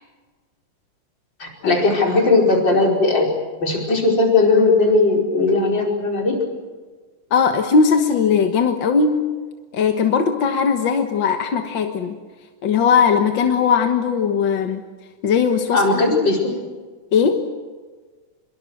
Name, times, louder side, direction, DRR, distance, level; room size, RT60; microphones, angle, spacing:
voice 1, 1.4-3.3 3.6-6.4 15.7-16.5, left 3 dB, 35° left, 0 dB, 5.5 m, -17 dB
voice 2, 7.3-9.3 9.7-12.2 12.6-14.8 15.2-16.3 17.1-17.5, left 6 dB, 50° left, 5 dB, 1.5 m, -19 dB
25.5 x 23.0 x 7.9 m, 1.4 s
omnidirectional pair, 3.6 m